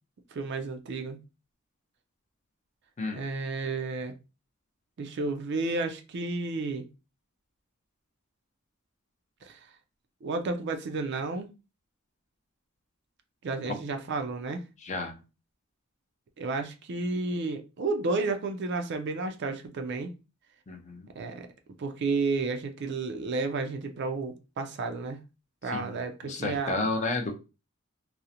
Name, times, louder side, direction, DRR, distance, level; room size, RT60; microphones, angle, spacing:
voice 1, 0.3-1.2 3.1-4.1 5.0-6.9 9.4-9.6 10.2-11.5 13.4-14.7 16.4-20.1 21.2-21.5 21.8-25.2 25.6-26.9, right 3 dB, 55° right, 0.4 m, -32 dB
voice 2, 14.8-15.1 20.7-21.1 25.7-27.3, left 3 dB, 35° left, 0.5 m, -32 dB
2.4 x 2.0 x 2.8 m
head